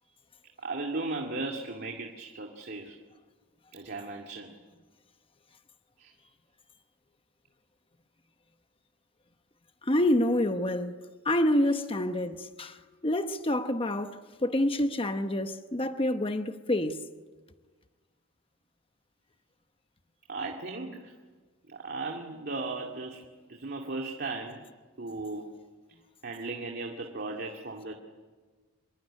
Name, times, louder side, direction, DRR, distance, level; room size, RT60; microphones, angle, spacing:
voice 1, 0.6-3.0 3.7-4.5 6.0-6.1 20.3-21.1 21.7-23.2 23.5-24.6 25.0-25.6 26.2-27.9, right 3 dB, 50° right, 2.3 m, -36 dB
voice 2, 9.9-10.9 11.2-12.8 13.0-17.0, left 1 dB, 25° left, 1.0 m, -27 dB
26.0 x 22.0 x 10.0 m
head